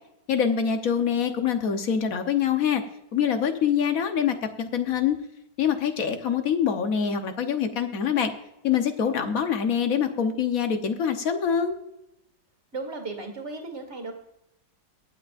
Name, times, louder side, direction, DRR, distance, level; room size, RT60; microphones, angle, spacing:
voice 1, 0.3-2.8 3.1-5.2 5.6-8.3 8.6-11.8, left 7 dB, 55° left, 7 dB, 1.4 m, -25 dB
voice 2, 12.7-14.1, right 3 dB, 40° right, 5 dB, 2.5 m, -35 dB
24.5 x 8.2 x 2.5 m, 0.86 s
omnidirectional pair, 1.9 m